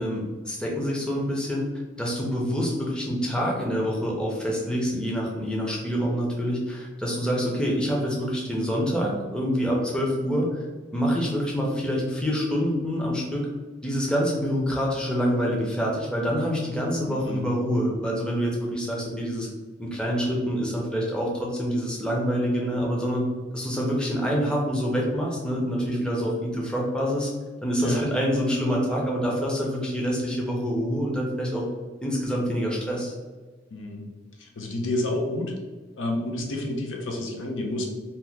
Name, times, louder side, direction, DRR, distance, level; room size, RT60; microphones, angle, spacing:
voice 1, 0.0-1.7 2.0-10.6 10.9-13.5 13.8-19.5 19.8-23.3 23.5-27.3 27.6-31.6 32.0-33.1, equal, 5° left, -3 dB, 0.5 m, -26 dB
voice 2, 17.1-17.5 27.8-28.0 33.7-34.0 34.6-35.5 36.0-37.9, left 1 dB, 85° left, 1 dB, 0.6 m, -29 dB
2.8 x 2.2 x 3.3 m, 1.3 s
head